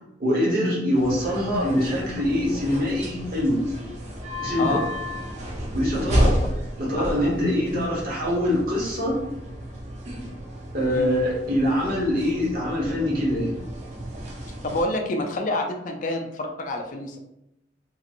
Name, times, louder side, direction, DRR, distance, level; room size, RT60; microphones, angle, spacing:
voice 1, 0.2-3.6 4.4-4.8 5.7-6.3 6.8-9.2 10.7-13.5, left 1 dB, 55° right, -4 dB, 1.0 m, -24 dB
sound 1, 0.9-14.8, equal, 40° right, 0.6 m, -31 dB
voice 2, 7.0-7.3 10.9-11.1 14.6-17.2, left 1 dB, 45° left, 4 dB, 0.4 m, -28 dB
3.0 x 2.9 x 2.5 m, 0.83 s
head